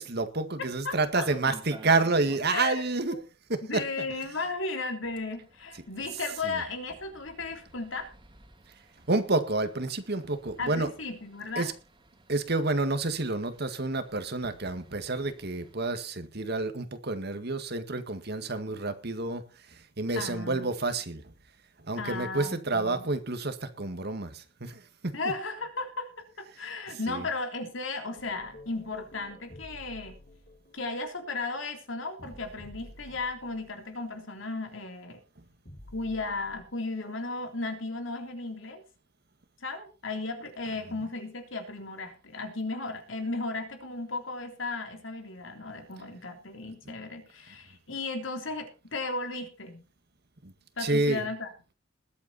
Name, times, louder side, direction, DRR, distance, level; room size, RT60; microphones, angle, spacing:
voice 1, 0.0-3.2 3.5-4.1 6.4-6.6 9.1-10.9 11.6-11.7 12.3-21.3 21.8-25.2 26.9-27.3 50.4-50.5 50.8-51.3, right 3 dB, 55° right, 1.9 m, -29 dB
voice 2, 0.8-1.3 2.5-2.8 3.1-3.2 3.6-8.1 10.6-11.7 20.1-20.7 22.0-23.1 25.1-30.2 30.7-35.2 35.9-38.8 39.6-49.8 50.8-51.5, left 3 dB, 80° left, 3.5 m, -35 dB
sound 1, 0.9-2.8 3.0-3.1 3.4-3.5 4.1-15.7, right 1 dB, 25° right, 2.9 m, -54 dB
sound 2, 28.2-34.0 35.6-36.7, left 1 dB, 45° left, 4.1 m, -50 dB
21.0 x 8.5 x 4.2 m
head